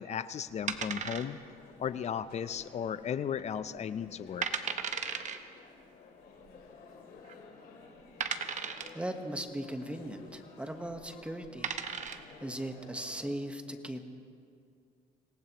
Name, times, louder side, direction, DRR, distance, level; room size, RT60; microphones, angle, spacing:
voice 1, 0.0-1.4 1.8-4.5, left 8 dB, 40° left, 14 dB, 0.6 m, -35 dB
sound 1, 0.6-13.4, left 4 dB, 60° left, 3.1 m, -54 dB
sound 2, 0.7-1.6 1.9-2.0 2.6-3.0 3.4-3.5 4.1-4.2 4.4-5.4 6.5-6.6 7.2-7.3 8.2-9.0 10.9-11.0 11.4-12.3, right 7 dB, 45° right, 0.9 m, -35 dB
voice 2, 8.9-11.7 12.0-14.0, right 1 dB, 5° right, 6 dB, 1.2 m, -39 dB
25.5 x 18.5 x 3.0 m, 2.4 s
cardioid pair, 110°, 17 cm